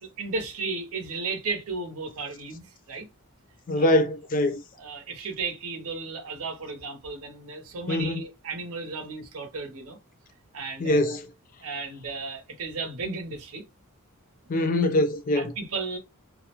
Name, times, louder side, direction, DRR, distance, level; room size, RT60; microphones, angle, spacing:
voice 1, 0.0-3.1 3.7-4.0 4.8-10.0 10.5-11.2 11.6-13.6 15.4-16.0, right 4 dB, 75° right, 0.7 m, -34 dB
voice 2, 3.7-4.6 7.9-8.2 10.8-11.3 14.5-15.5, left 1 dB, 40° left, 0.4 m, -23 dB
2.4 x 2.0 x 2.9 m
head